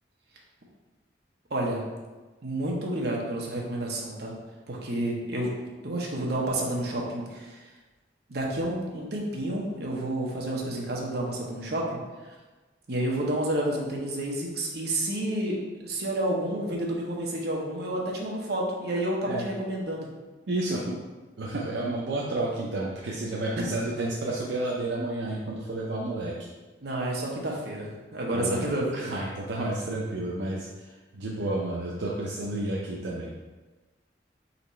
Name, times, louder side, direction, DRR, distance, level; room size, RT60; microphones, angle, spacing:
voice 1, 1.5-1.8 2.4-4.3 4.7-5.5 5.8-7.6 8.3-12.0 12.9-15.6 15.8-20.1 23.6-23.7 26.8-29.1, right 1 dB, 65° right, -2 dB, 0.9 m, -30 dB
voice 2, 20.5-21.0 21.4-26.3 28.3-33.3, right 2 dB, 80° right, -4 dB, 0.5 m, -31 dB
4.1 x 3.0 x 4.2 m, 1.2 s
head